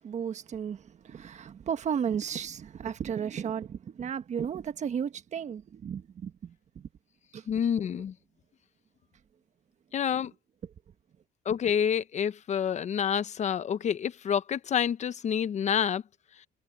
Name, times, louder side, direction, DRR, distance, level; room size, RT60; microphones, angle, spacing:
voice 1, 0.0-6.9 7.3-7.5, right 8 dB, 45° right, 1.4 m, -34 dB
voice 2, 7.5-8.1 9.9-10.3 11.5-16.0, left 8 dB, 45° left, 0.8 m, -28 dB
cardioid pair, 110°, 17 cm